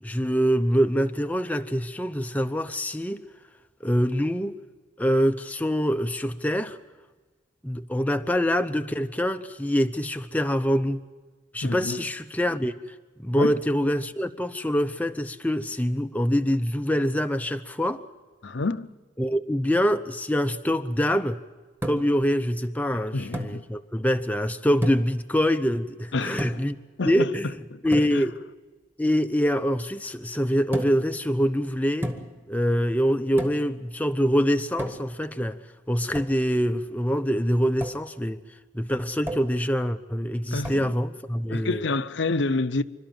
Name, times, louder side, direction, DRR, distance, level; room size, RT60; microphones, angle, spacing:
voice 1, 0.0-3.2 3.8-4.6 5.0-6.8 7.6-11.0 11.5-18.0 19.2-21.4 21.8-26.8 27.1-27.5 27.8-28.4 29.0-32.1 32.5-35.6 35.9-38.4 38.7-41.8, equal, 10° left, 0.6 m, -25 dB
voice 2, 11.6-12.0 13.4-13.6 18.4-18.9 22.9-23.6 26.1-26.5 27.0-27.3 27.7-28.2 40.5-40.9 41.5-42.8, left 3 dB, 65° left, 0.7 m, -28 dB
sound 1, 21.8-22.2 23.3-23.6 24.8-25.2 26.4-26.8 27.9-28.2 30.7-31.1 32.0-32.4 33.4-33.7 34.8-35.2 36.1-36.4 37.8-38.0 39.3-39.6 40.6-40.9, equal, 10° right, 1.6 m, -32 dB
27.0 x 13.0 x 9.2 m
head